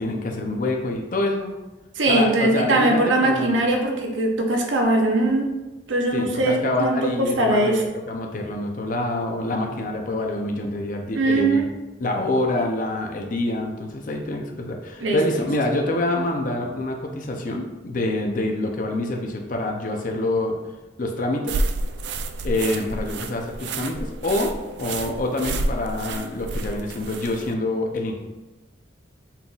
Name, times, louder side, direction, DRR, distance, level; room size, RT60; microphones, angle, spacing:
voice 1, 0.0-1.5 2.1-3.6 6.1-11.7 12.0-20.6 21.0-21.6 22.4-24.5 24.8-28.2, left 2 dB, 45° left, 2 dB, 0.5 m, -26 dB
voice 2, 2.0-5.5 5.9-7.8 11.1-11.6 15.0-15.2, right 2 dB, 85° right, 1 dB, 0.8 m, -21 dB
sound 1, 21.5-27.5, right 2 dB, 65° right, 0.3 m, -29 dB
5.7 x 3.9 x 2.3 m, 1.1 s
head